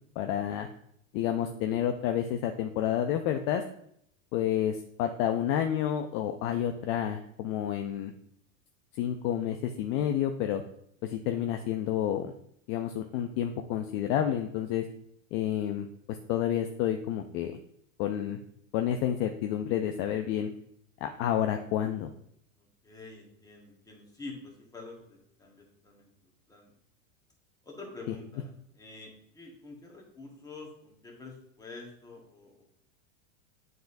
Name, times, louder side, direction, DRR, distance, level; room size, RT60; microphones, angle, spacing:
voice 1, 0.2-0.7 1.1-3.6 4.3-8.1 8.9-10.6 11.0-12.3 12.7-14.8 15.3-15.9 16.3-17.6 18.0-18.4 18.7-20.5 21.0-22.1, left 10 dB, 45° left, 5 dB, 0.5 m, -29 dB
voice 2, 22.6-26.8 27.6-32.6, left 3 dB, 10° left, -2 dB, 1.6 m, -47 dB
9.3 x 3.9 x 2.6 m, 0.71 s
hypercardioid pair, 120°, 39 cm